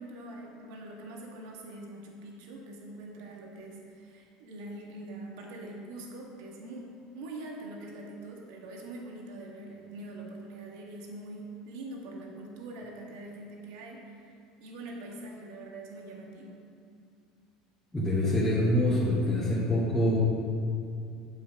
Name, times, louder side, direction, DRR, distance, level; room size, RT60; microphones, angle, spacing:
voice 1, 0.0-6.8 7.1-14.2 14.6-16.6, right 2 dB, 75° right, -1 dB, 1.7 m, -43 dB
voice 2, 17.9-20.2, left 1 dB, 10° left, -11 dB, 2.4 m, -25 dB
7.7 x 7.2 x 5.2 m, 2.4 s
supercardioid pair, 100°, 2 cm